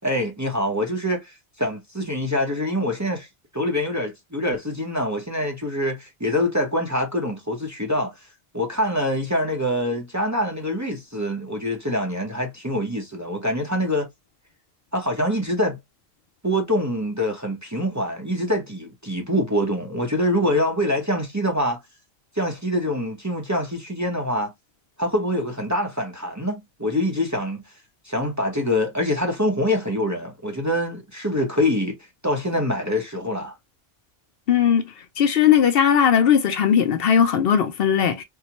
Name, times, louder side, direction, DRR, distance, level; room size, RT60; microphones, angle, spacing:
voice 1, 0.0-3.3 3.5-8.1 8.5-14.1 14.9-15.8 16.4-21.8 22.3-24.5 25.0-27.6 28.0-32.0 32.2-33.6, left 1 dB, 20° right, 0.7 m, -25 dB
voice 2, 34.5-34.9 35.2-38.2, left 8 dB, 70° left, 0.8 m, -18 dB
3.8 x 2.1 x 2.8 m
omnidirectional pair, 1.0 m